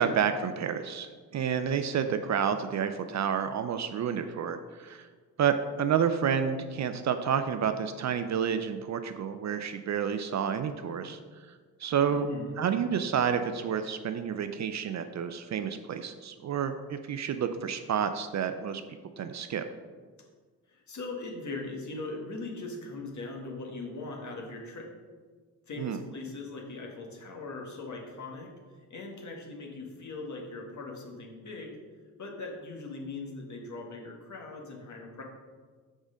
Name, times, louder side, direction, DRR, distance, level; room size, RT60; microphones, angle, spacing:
voice 1, 0.0-5.1 5.4-11.2 11.8-12.3 12.6-18.8 19.2-19.7 25.8-26.0, right 7 dB, 45° right, 9 dB, 0.5 m, -29 dB
voice 2, 12.1-12.5 20.7-24.9 25.7-31.8 32.2-35.2, left 3 dB, 45° left, 0 dB, 1.8 m, -40 dB
6.2 x 5.0 x 5.1 m, 1.5 s
supercardioid pair, 75°, 40 cm